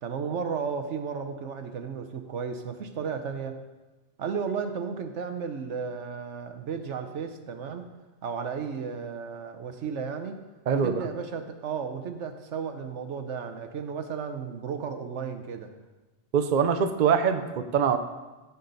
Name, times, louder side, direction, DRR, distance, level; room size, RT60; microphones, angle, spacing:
voice 1, 0.0-3.6 4.2-7.9 8.2-10.4 10.7-15.7, right 6 dB, 85° right, 7 dB, 1.2 m, -34 dB
voice 2, 10.7-11.1 16.3-18.0, right 7 dB, 50° right, 7 dB, 0.8 m, -23 dB
14.5 x 7.0 x 4.0 m, 1.2 s
omnidirectional pair, 1.2 m